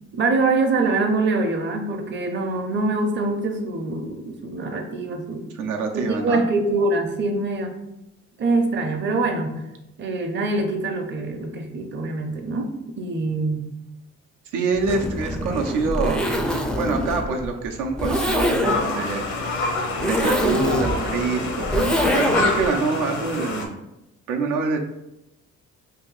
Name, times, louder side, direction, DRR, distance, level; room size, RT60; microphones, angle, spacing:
voice 1, 0.1-5.5 5.9-7.8 8.4-9.7 10.0-13.7, right 3 dB, 40° right, 4 dB, 0.6 m, -24 dB
voice 2, 5.6-6.4 14.5-16.3 16.8-23.8 24.3-24.8, right 4 dB, 85° right, 2 dB, 0.5 m, -26 dB
Zipper (clothing), 14.7-22.7, equal, 5° left, 0.3 m, -25 dB
sound 1, 18.6-23.6, left 3 dB, 70° left, 0.7 m, -27 dB
2.7 x 2.5 x 3.9 m, 0.90 s
cardioid pair, 90°, 30 cm